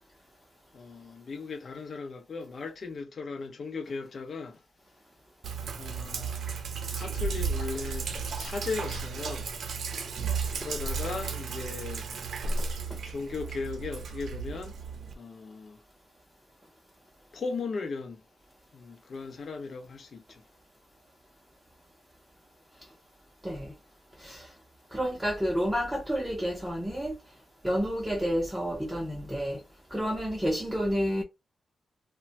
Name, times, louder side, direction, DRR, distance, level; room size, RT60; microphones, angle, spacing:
voice 1, 0.7-4.6 5.8-6.5 6.9-9.5 10.6-12.1 13.0-14.7 15.2-15.8 17.3-18.2 18.7-20.4, left 4 dB, 45° left, 0.6 m, -37 dB
Sink (filling or washing), 5.4-15.1, right 5 dB, 70° right, 0.5 m, -34 dB
voice 2, 24.9-27.1 27.6-29.6 29.9-31.2, equal, 5° right, 0.6 m, -30 dB
3.0 x 2.1 x 2.8 m
wide cardioid pair, 170°, 0 cm